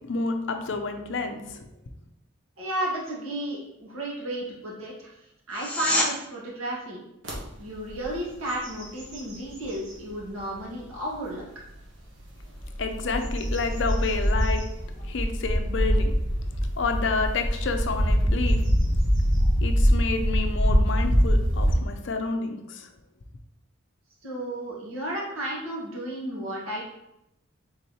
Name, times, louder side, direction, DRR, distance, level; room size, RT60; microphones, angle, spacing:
voice 1, 0.0-1.7 12.8-14.7 15.0-16.2 16.8-18.6 19.6-22.9, left 4 dB, 60° left, 6 dB, 0.5 m, -29 dB
voice 2, 2.6-5.2 5.5-7.0 7.6-11.4 24.2-26.8, right 1 dB, 90° right, -5 dB, 1.6 m, -33 dB
sound 1, 5.5-6.1 17.5-17.6, left 1 dB, 5° left, 0.5 m, -26 dB
sound 2, 7.2-7.4 7.9-8.1 8.5-10.0 10.6-10.7 12.4-21.7, equal, 65° right, 1.2 m, -24 dB
4.1 x 3.8 x 3.1 m, 0.87 s
head